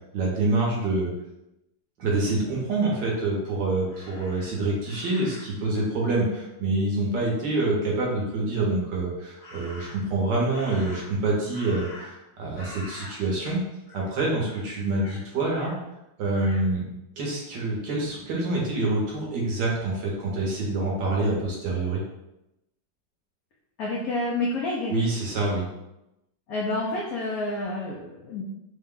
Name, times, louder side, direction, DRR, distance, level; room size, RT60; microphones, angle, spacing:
voice 1, 0.1-1.1 2.0-13.6 13.9-15.7 16.2-16.9 17.2-22.0 24.9-25.7, right 2 dB, 65° right, -3 dB, 1.5 m, -26 dB
Crow, 3.9-5.6 9.4-10.1 10.5-12.3 12.5-13.6 13.9-14.1 14.4-15.7 16.3-16.7, left 1 dB, 40° left, 0.8 m, -45 dB
voice 2, 23.8-25.0 26.5-28.4, left 2 dB, 80° left, -2 dB, 0.8 m, -29 dB
4.3 x 2.2 x 3.6 m, 0.90 s
omnidirectional pair, 2.2 m